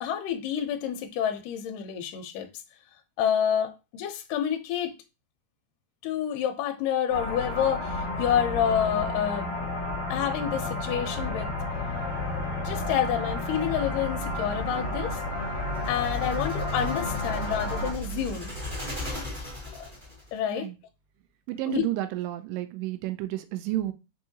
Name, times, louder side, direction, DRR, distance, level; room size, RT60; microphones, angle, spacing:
voice 1, 0.0-2.5 3.2-5.0 6.0-9.8 10.1-11.6 12.6-15.2 15.9-18.5 19.7-19.9 20.3-20.7 21.7-21.8, left 9 dB, 75° left, 2.1 m, -28 dB
sound 1, 7.1-17.9, left 2 dB, 60° left, 2.3 m, -32 dB
sound 2, 9.4-19.7, equal, 45° left, 2.1 m, -37 dB
sound 3, 15.7-20.3, left 2 dB, 35° right, 0.8 m, -39 dB
voice 2, 21.5-23.9, right 14 dB, 80° right, 2.1 m, -31 dB
5.7 x 2.7 x 2.7 m
omnidirectional pair, 4.2 m